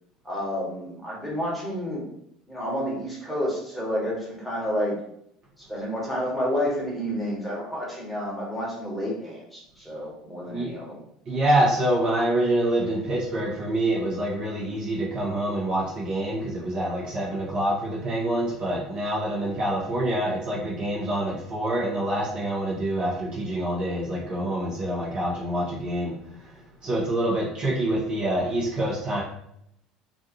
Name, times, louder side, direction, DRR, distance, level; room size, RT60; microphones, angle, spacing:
voice 1, 0.2-2.0 2.5-5.0 5.6-11.0, equal, ahead, -6 dB, 1.1 m, -30 dB
voice 2, 11.3-26.2 26.8-29.2, right 1 dB, 40° right, -5 dB, 0.8 m, -26 dB
2.5 x 2.3 x 2.8 m, 0.74 s
figure-of-eight pair, 65°, 2 cm